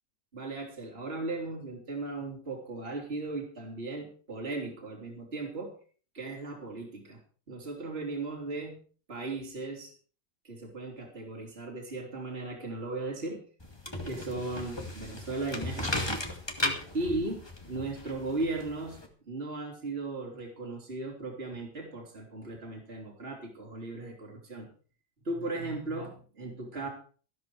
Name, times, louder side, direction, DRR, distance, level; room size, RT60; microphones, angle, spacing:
voice 1, 0.3-5.7 6.1-7.2 7.5-8.8 9.1-9.9 10.4-13.4 14.0-16.2 16.9-24.7 25.2-26.9, right 2 dB, 35° right, -1 dB, 3.8 m, -37 dB
sound 1, 13.6-19.1, left 1 dB, 15° left, 2.2 m, -36 dB
14.0 x 13.5 x 4.7 m, 0.41 s
omnidirectional pair, 1.8 m